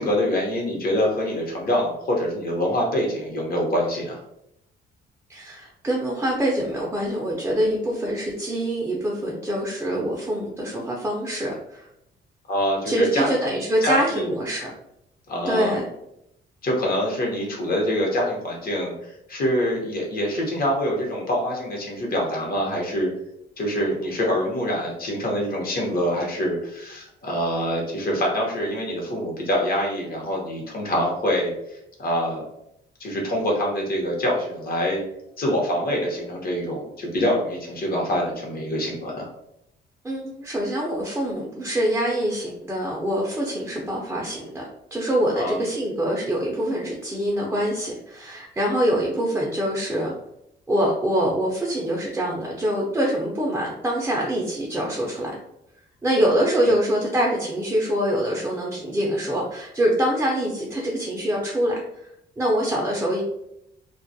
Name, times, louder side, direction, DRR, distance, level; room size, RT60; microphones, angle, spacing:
voice 1, 0.0-4.2 12.5-13.3 13.8-14.4 15.3-15.8 16.6-23.1 23.6-32.4 33.0-35.0 35.4-39.3 45.3-45.6, equal, 50° left, -1 dB, 0.9 m, -25 dB
voice 2, 5.3-11.9 12.9-14.7 15.5-15.9 40.0-44.6 44.9-50.1 50.7-55.4 56.0-61.8 62.4-63.2, right 1 dB, 10° right, -2 dB, 0.4 m, -24 dB
2.3 x 2.1 x 2.6 m, 0.80 s
cardioid pair, 90°, 20 cm